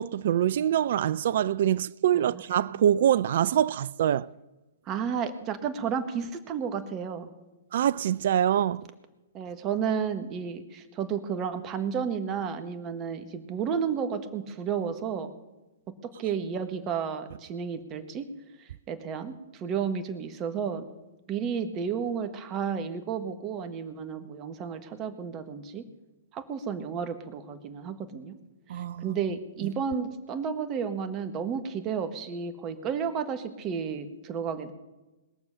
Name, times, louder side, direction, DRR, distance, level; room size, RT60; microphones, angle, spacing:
voice 1, 0.0-4.3 7.7-8.9 28.7-29.2 29.6-29.7, right 10 dB, 60° right, 0.4 m, -25 dB
voice 2, 4.9-7.3 9.3-15.3 16.0-18.2 18.6-20.9 21.3-25.9 26.3-28.3 28.7-34.7, right 7 dB, 30° right, 1.5 m, -32 dB
21.0 x 7.0 x 6.8 m
hypercardioid pair, 120°, 0 cm